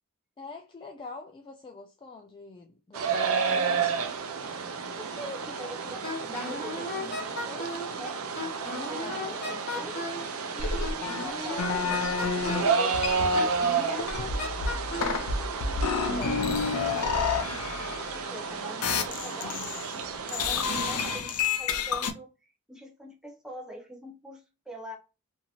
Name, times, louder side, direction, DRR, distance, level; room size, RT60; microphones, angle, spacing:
voice 1, 0.4-3.9 9.0-9.5 14.7-16.6, left 3 dB, 20° left, 0.3 m, -45 dB
sound 1, 2.9-21.2, right 5 dB, 70° right, 0.5 m, -31 dB
voice 2, 5.0-8.2 8.9-10.1 10.5-14.1 15.7-15.8 18.1-19.6 19.9-21.3 21.6-22.3 22.7-25.0, right 1 dB, 5° right, 0.8 m, -43 dB
Wind instrument woodwind instrument, 6.0-7.9 8.4-10.3 10.8-12.8 13.3-15.2, left 2 dB, 50° left, 1.1 m, -36 dB
sound 2, 10.6-12.6 12.9-13.6 14.0-18.4 18.8-19.9 20.3-22.1, left 5 dB, 85° left, 0.6 m, -30 dB
2.9 x 2.7 x 2.5 m
head